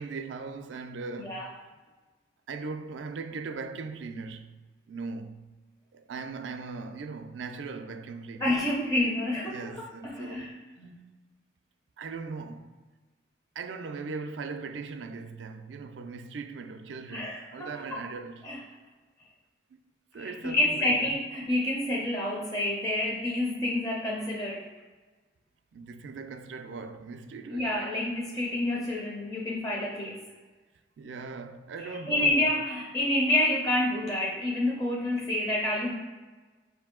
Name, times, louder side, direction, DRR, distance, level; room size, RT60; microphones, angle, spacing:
voice 1, 0.0-1.6 2.5-4.6 4.9-5.5 5.9-8.6 9.4-10.5 12.0-12.8 13.5-18.5 19.7-19.8 20.1-21.2 25.7-27.7 31.0-32.5, right 4 dB, 85° right, 0.4 m, -39 dB
voice 2, 8.4-10.5 10.8-11.0 17.1-17.7 18.4-18.6 20.2-24.7 27.5-30.2 31.8-35.9, left 1 dB, 20° left, 0.5 m, -28 dB
5.3 x 2.6 x 3.6 m
head